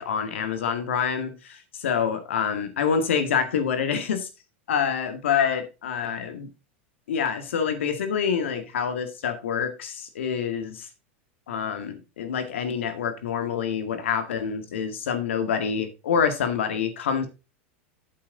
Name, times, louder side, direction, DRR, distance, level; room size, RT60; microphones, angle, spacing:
voice 1, 0.0-4.3 4.7-6.5 7.1-10.9 11.5-17.3, left 7 dB, 85° left, 2.0 m, -26 dB
8.6 x 7.6 x 3.8 m
hypercardioid pair, 110°, 6 cm